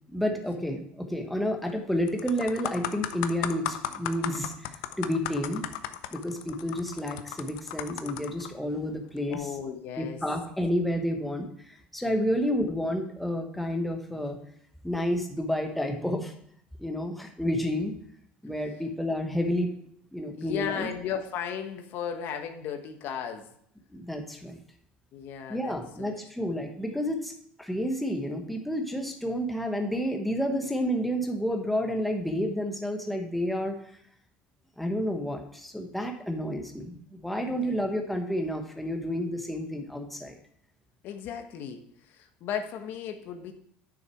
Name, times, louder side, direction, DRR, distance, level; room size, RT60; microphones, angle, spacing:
voice 1, 0.1-5.6 6.1-9.5 10.0-14.4 14.8-16.3 16.8-17.9 18.4-19.7 20.1-20.9 23.9-24.6 25.5-27.3 27.6-33.8 34.8-40.4, equal, ahead, 3 dB, 1.1 m, -30 dB
sound 1, 1.5-1.7 2.1-8.5 9.2-9.4, left 12 dB, 80° left, 0.6 m, -36 dB
voice 2, 9.3-10.2 20.3-23.5 25.1-26.3 37.4-37.8 41.0-43.5, left 8 dB, 55° left, 6 dB, 1.1 m, -36 dB
8.9 x 6.6 x 4.5 m, 0.66 s
cardioid pair, 125°, 4 cm